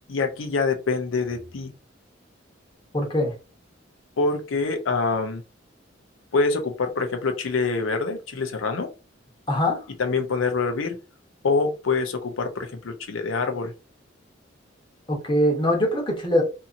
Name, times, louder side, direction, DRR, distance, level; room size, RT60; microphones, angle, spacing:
voice 1, 0.1-1.7 4.2-5.4 6.3-8.9 10.0-11.0 11.4-13.7, left 4 dB, 85° left, 0.6 m, -25 dB
voice 2, 2.9-3.3 9.5-9.8 15.1-16.4, equal, 25° left, 0.9 m, -22 dB
2.8 x 2.6 x 2.5 m
head